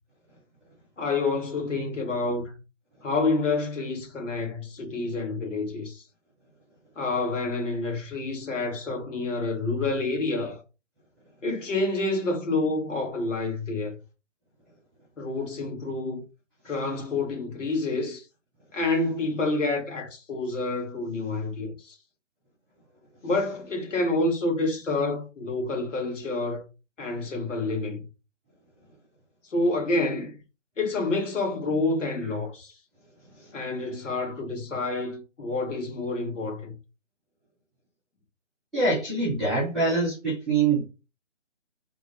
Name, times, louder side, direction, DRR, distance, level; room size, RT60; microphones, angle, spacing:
voice 1, 1.0-2.5 3.0-6.0 6.9-10.6 11.4-14.0 15.2-16.2 16.6-18.2 18.7-22.0 23.2-26.6 27.0-28.0 29.5-30.3 30.8-32.8 33.5-36.7, left 2 dB, 80° left, 1.6 m, -28 dB
voice 2, 38.7-40.8, right 3 dB, ahead, 0.5 m, -24 dB
3.5 x 2.1 x 3.1 m
hypercardioid pair, 170°, 37 cm